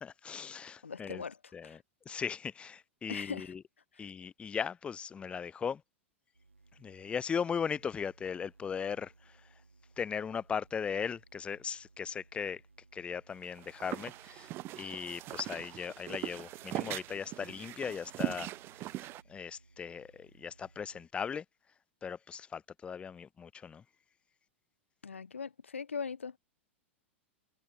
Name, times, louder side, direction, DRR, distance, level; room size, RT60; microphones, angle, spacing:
voice 1, 0.0-1.2 1.5-3.6 4.0-5.8 6.8-9.1 10.0-12.6 12.9-14.5 14.8-18.5 19.0-21.4 22.0-23.8, left 7 dB, 15° left, 0.4 m, -38 dB
voice 2, 0.8-1.8 3.1-3.5 3.9-4.1 25.0-26.4, left 5 dB, 80° left, 1.0 m, -40 dB
sound 1, 6.3-21.1, right 3 dB, 90° right, 1.3 m, -63 dB
sound 2, 13.4-19.2, right 16 dB, 35° right, 0.6 m, -40 dB
figure-of-eight pair, 95°, 7 cm